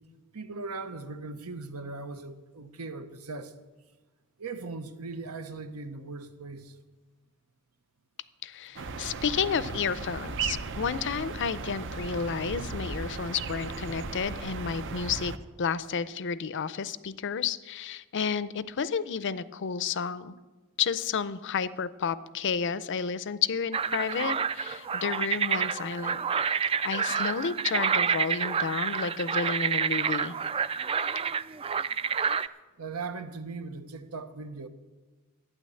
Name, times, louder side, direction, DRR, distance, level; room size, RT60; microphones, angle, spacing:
voice 1, 0.3-3.5 4.4-6.8 15.8-15.9 24.9-25.0 32.8-34.7, right 3 dB, 80° right, 1.1 m, -39 dB
voice 2, 8.4-20.3 20.8-26.2 26.5-26.6 26.8-30.3, left 6 dB, 55° left, 0.5 m, -31 dB
sound 1, 8.8-15.4, right 4 dB, 60° right, 0.7 m, -36 dB
sound 2, 23.7-32.5, right 6 dB, 25° right, 0.3 m, -28 dB
12.5 x 9.3 x 7.7 m
head